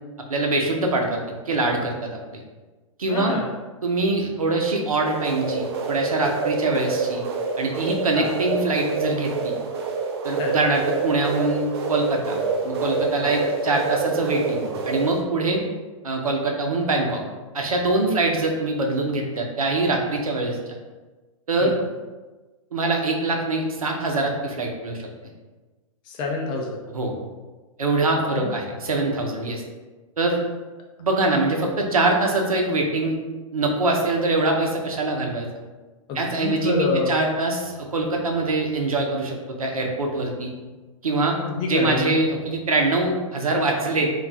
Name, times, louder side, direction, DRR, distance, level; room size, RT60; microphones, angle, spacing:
voice 1, 0.3-2.4 3.0-3.3 3.8-7.2 7.6-9.5 10.2-15.6 16.0-17.2 17.5-20.6 21.5-21.8 22.7-25.1 26.9-27.1 27.8-29.6 30.2-30.4 31.0-33.2 33.5-35.5 36.1-40.5 41.0-41.4 41.7-44.1, right 2 dB, 85° right, 1 dB, 0.7 m, -23 dB
voice 2, 3.1-3.5 8.1-8.3 10.3-10.6 13.2-13.4 21.6-21.8 26.1-26.8 28.1-28.6 36.1-37.2 41.3-42.2, left 4 dB, 25° left, 0 dB, 0.5 m, -27 dB
sound 1, 5.0-15.2, right 4 dB, 45° right, 0.4 m, -27 dB
2.4 x 2.2 x 4.0 m, 1.2 s
hypercardioid pair, 120°, 18 cm